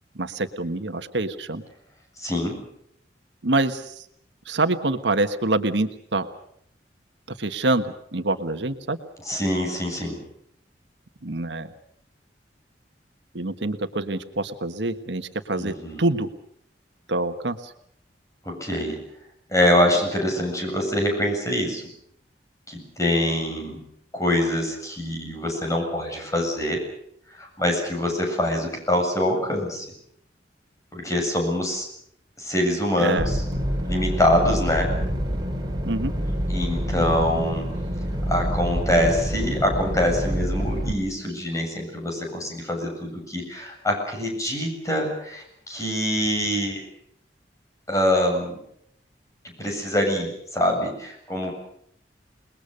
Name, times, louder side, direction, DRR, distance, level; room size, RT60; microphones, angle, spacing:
voice 1, 0.1-1.6 3.4-4.0 4.5-6.3 7.4-9.0 11.2-11.7 13.3-16.3 17.1-17.7 33.0-33.3 35.8-36.1, right 2 dB, 85° right, 8 dB, 1.5 m, -26 dB
voice 2, 2.2-2.6 9.3-10.2 15.6-16.0 18.4-19.0 19.5-21.8 22.7-23.8 24.1-26.8 27.4-29.8 30.9-31.9 32.4-33.4 33.8-34.9 36.5-37.6 38.3-46.9 47.9-48.6 49.6-51.5, left 1 dB, 20° left, 2 dB, 7.7 m, -24 dB
sound 1, 33.2-40.9, equal, 25° right, 4.0 m, -27 dB
28.5 x 20.5 x 6.7 m, 0.70 s
head